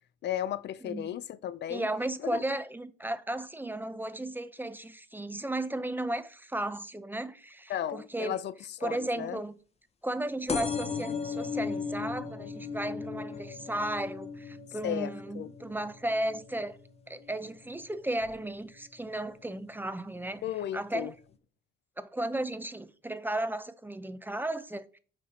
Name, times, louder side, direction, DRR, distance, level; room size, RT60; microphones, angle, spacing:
voice 1, 0.2-1.9 2.2-2.4 7.7-8.5 8.8-9.4 14.8-15.5 20.4-21.1, left 11 dB, 60° left, 0.4 m, -34 dB
voice 2, 1.7-8.4 8.8-9.6 10.0-16.8 17.1-20.4 20.7-21.1 22.0-25.0, right 1 dB, 10° right, 0.5 m, -35 dB
sound 1, 10.5-17.7 18.2-18.7 19.5-19.6 19.8-19.9 20.2-20.3, left 5 dB, 30° left, 0.8 m, -37 dB
5.9 x 5.0 x 4.2 m
cardioid pair, 90°, 20 cm